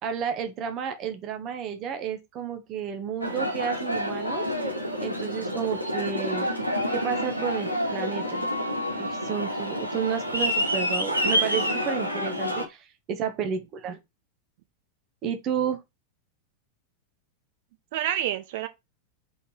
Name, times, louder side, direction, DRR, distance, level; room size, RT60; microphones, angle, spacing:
voice 1, 0.0-4.4 5.0-6.5 6.9-8.4 8.9-14.0 15.2-15.8, right 7 dB, 35° right, 1.3 m, -31 dB
Aircraft, 3.2-12.6, equal, 85° right, 2.2 m, -28 dB
voice 2, 5.2-5.7 12.2-12.6 17.9-18.7, right 11 dB, 50° right, 1.1 m, -31 dB
5.4 x 3.9 x 4.9 m
figure-of-eight pair, 90°, 0 cm